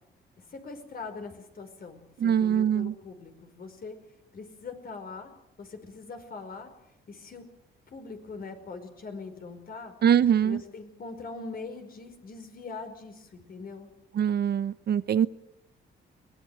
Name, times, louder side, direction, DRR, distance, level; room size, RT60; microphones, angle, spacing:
voice 1, 0.4-4.0 4.3-5.3 5.6-6.7 7.1-7.4 7.9-9.9 10.4-13.9, left 4 dB, 50° left, 6 dB, 5.1 m, -42 dB
voice 2, 2.2-2.9 10.0-10.6 14.2-15.3, right 9 dB, 55° right, 15 dB, 0.8 m, -23 dB
23.0 x 18.5 x 8.0 m, 0.86 s
cardioid pair, 90°, 20 cm